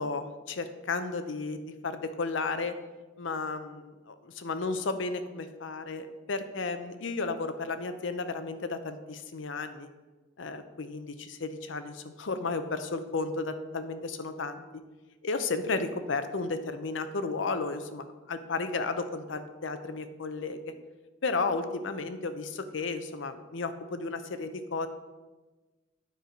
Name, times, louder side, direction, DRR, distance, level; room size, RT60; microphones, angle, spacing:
voice 1, 0.0-2.8 3.2-9.9 10.4-14.6 15.2-20.7 21.2-24.9, left 3 dB, 70° left, 10 dB, 0.7 m, -33 dB
9.3 x 4.6 x 5.2 m, 1.2 s
head